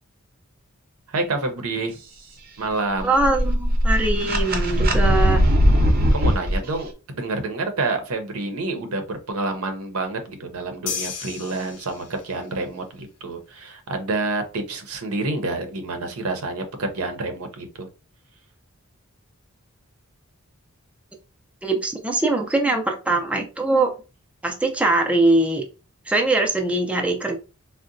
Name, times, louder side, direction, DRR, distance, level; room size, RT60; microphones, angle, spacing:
voice 1, 1.1-2.0 2.6-3.1 6.1-17.9, right 3 dB, 75° right, 0.7 m, -28 dB
voice 2, 3.0-5.4 21.6-24.0 24.4-25.7 26.1-27.4, right 2 dB, 5° right, 0.4 m, -22 dB
sound 1, 3.0-6.6, equal, 45° right, 0.6 m, -19 dB
sound 2, 10.9-12.4, left 7 dB, 80° left, 0.5 m, -33 dB
3.7 x 2.1 x 2.5 m
head